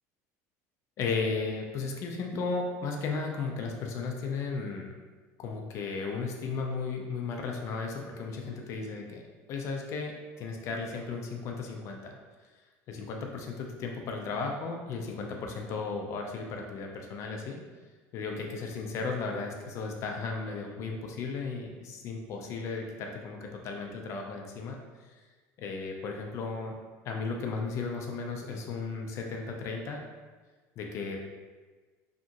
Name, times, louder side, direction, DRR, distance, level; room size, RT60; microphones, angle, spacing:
voice 1, 1.0-4.9 5.4-9.2 9.5-12.2 12.9-17.6 18.1-24.8 25.6-26.7 27.0-30.0 30.8-31.2, left 4 dB, 45° left, 2 dB, 0.4 m, -35 dB
2.8 x 2.4 x 2.6 m, 1.3 s
cardioid pair, 145°, 7 cm